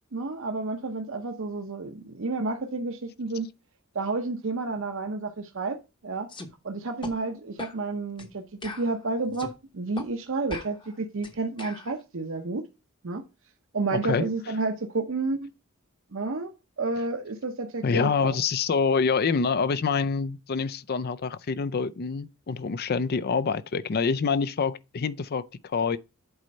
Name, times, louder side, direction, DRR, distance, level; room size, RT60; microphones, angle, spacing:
voice 1, 0.1-3.5 3.9-5.8 6.0-6.3 6.6-12.6 13.0-13.2 13.7-15.5 16.1-16.5 16.8-18.4, right 3 dB, 65° right, 0.8 m, -30 dB
sound 1, 6.3-6.5 7.0-7.2 7.6-7.8 8.2-8.3 8.6-9.6 10.0-10.1 10.5-11.9, left 2 dB, 25° left, 0.9 m, -40 dB
voice 2, 13.9-14.3 17.8-26.0, left 5 dB, 50° left, 0.4 m, -26 dB
8.0 x 4.4 x 5.2 m
head